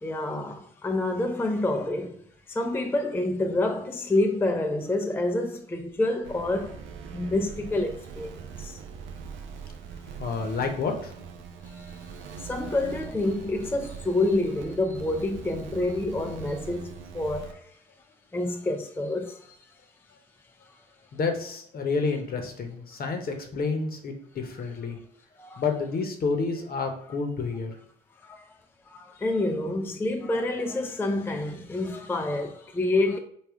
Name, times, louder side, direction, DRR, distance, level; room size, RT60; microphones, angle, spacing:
voice 1, 0.0-6.8 7.1-8.8 11.6-12.1 12.4-17.7 18.3-19.6 25.4-25.6 28.2-28.5 28.9-33.2, left 2 dB, 10° left, 0.4 m, -28 dB
sound 1, 6.2-17.5, right 6 dB, 70° right, 0.5 m, -42 dB
voice 2, 10.2-11.1 21.1-25.0 25.6-27.7, left 4 dB, 50° left, 0.8 m, -29 dB
3.5 x 2.3 x 3.4 m
supercardioid pair, 60°, 20 cm